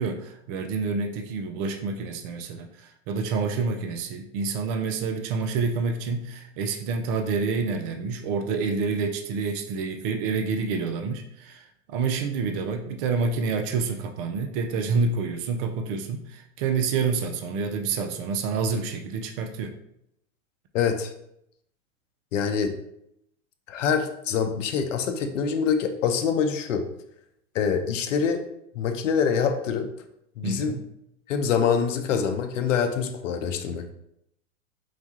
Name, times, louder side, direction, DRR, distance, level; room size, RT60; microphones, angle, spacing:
voice 1, 0.0-19.7 30.4-30.9, right 4 dB, 45° right, 6 dB, 0.5 m, -28 dB
voice 2, 20.7-21.1 22.3-22.7 23.7-26.9 27.5-28.5 28.7-29.9 30.4-30.8 31.3-33.9, left 6 dB, 70° left, 7 dB, 0.6 m, -25 dB
4.9 x 2.3 x 2.8 m, 0.77 s
hypercardioid pair, 95°, 39 cm